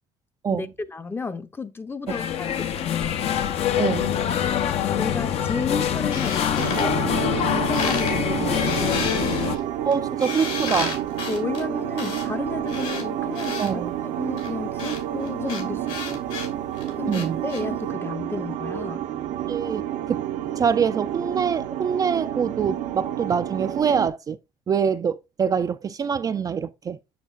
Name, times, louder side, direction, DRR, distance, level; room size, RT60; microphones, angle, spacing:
voice 1, 0.5-3.2 3.9-4.0 5.0-9.5 11.3-16.2 17.0-19.0, left 4 dB, 20° left, 0.6 m, -33 dB
sound 1, 2.1-9.6, left 9 dB, 60° left, 0.7 m, -24 dB
voice 2, 3.8-4.1 9.8-11.0 13.6-13.9 17.1-17.4 19.5-19.8 20.1-20.2 20.6-24.4 24.7-27.0, right 6 dB, 30° right, 0.3 m, -24 dB
sound 2, 6.1-7.5 7.7-8.1 8.5-13.7 14.4-17.6, left 5 dB, 75° left, 3.2 m, -33 dB
sound 3, 6.6-24.1, right 11 dB, 75° right, 0.8 m, -29 dB
7.3 x 6.4 x 2.4 m
cardioid pair, 100°, 12 cm